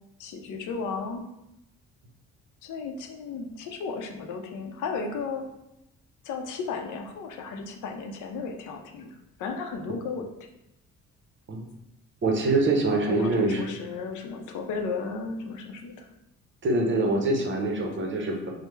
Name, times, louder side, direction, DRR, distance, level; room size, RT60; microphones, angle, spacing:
voice 1, 0.2-1.3 2.6-5.5 6.2-10.3 12.9-16.1, left 4 dB, 80° left, 4 dB, 0.5 m, -34 dB
voice 2, 12.2-13.6 16.6-18.5, right 2 dB, 40° right, 1 dB, 0.7 m, -24 dB
3.2 x 2.0 x 3.1 m, 0.86 s
cardioid pair, 90°, 30 cm